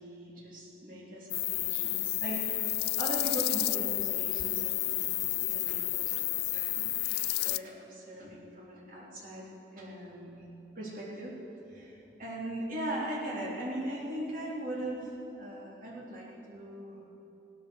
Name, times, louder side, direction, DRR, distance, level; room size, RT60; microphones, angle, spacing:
voice 1, 0.0-2.6 3.0-9.5 9.7-10.4 10.8-11.3 11.7-17.0, right 1 dB, 45° right, -5 dB, 3.6 m, -40 dB
sound 1, 1.3-7.6, left 19 dB, 60° left, 0.3 m, -31 dB
17.0 x 13.0 x 6.6 m, 3.0 s
head